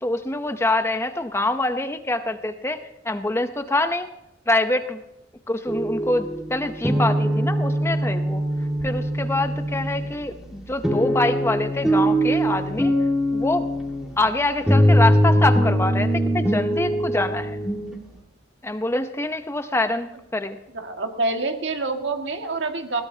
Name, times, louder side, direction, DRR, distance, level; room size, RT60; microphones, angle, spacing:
voice 1, 0.0-4.1 4.5-5.0 5.5-8.4 8.8-12.9 13.3-13.7 14.2-17.6 18.6-20.6, left 2 dB, 15° left, 8 dB, 0.7 m, -25 dB
sound 1, 5.7-18.0, equal, 5° right, 1.9 m, -22 dB
voice 2, 20.7-23.0, right 3 dB, 70° right, 4 dB, 1.9 m, -26 dB
20.0 x 16.5 x 2.8 m, 0.85 s
head